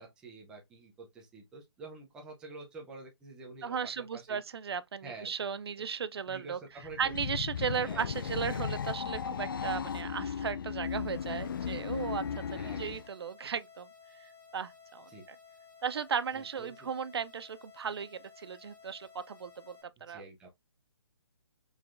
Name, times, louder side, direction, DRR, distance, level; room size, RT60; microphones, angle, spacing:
voice 1, 0.0-4.4 5.0-5.3 6.3-7.1 7.8-8.1 12.5-13.0 15.1-15.2 16.3-16.7 20.1-20.5, right 3 dB, 5° right, 0.5 m, -48 dB
voice 2, 3.6-6.6 7.0-12.2 12.5-13.9 14.2-15.1 15.8-20.3, right 7 dB, 60° right, 0.4 m, -36 dB
sound 1, 6.8-13.1, left 7 dB, 50° left, 0.4 m, -36 dB
sound 2, 10.8-19.8, left 6 dB, 20° left, 1.0 m, -56 dB
4.8 x 3.7 x 2.4 m
hypercardioid pair, 170°, 15 cm